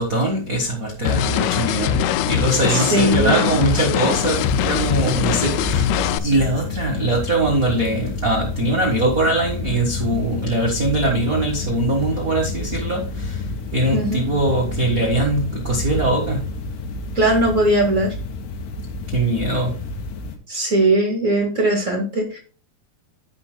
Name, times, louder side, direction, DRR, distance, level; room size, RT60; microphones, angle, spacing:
voice 1, 0.0-16.4 19.1-19.8, right 1 dB, 60° right, 0.9 m, -22 dB
sound 1, 1.1-6.2, left 10 dB, 90° left, 2.5 m, -21 dB
voice 2, 2.7-3.5 13.9-14.2 17.1-18.1 20.5-22.4, right 1 dB, 40° right, 1.1 m, -19 dB
sound 2, 4.1-20.4, left 3 dB, 70° left, 2.5 m, -30 dB
15.5 x 5.2 x 2.2 m
omnidirectional pair, 4.4 m